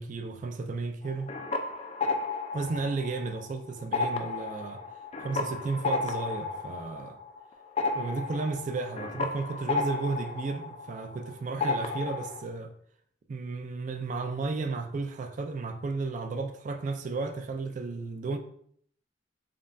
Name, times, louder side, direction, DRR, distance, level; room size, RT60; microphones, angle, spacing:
voice 1, 0.0-1.3 2.5-4.8 5.2-7.2 7.9-12.7 13.3-18.4, right 3 dB, 45° right, 0.3 m, -33 dB
sound 1, 1.0-3.5 3.8-11.3 11.6-12.4, left 3 dB, 35° left, 0.4 m, -33 dB
5.1 x 2.3 x 2.6 m
head